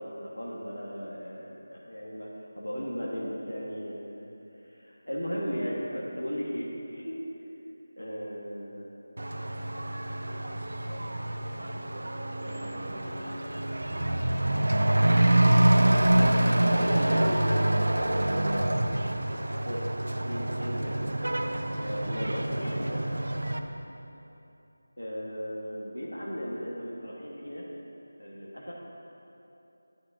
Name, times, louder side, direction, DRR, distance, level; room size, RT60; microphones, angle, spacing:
voice 1, 0.0-7.2 8.0-8.9 12.4-13.5 16.1-21.1 21.4-23.0 25.0-27.6 28.2-28.7, equal, 80° left, -5 dB, 1.7 m, -36 dB
Truck / Accelerating revving vroom, 9.2-23.6, right 1 dB, 65° right, 0.6 m, -26 dB
12.5 x 11.5 x 2.8 m, 2.9 s
figure-of-eight pair, 165°, 0 cm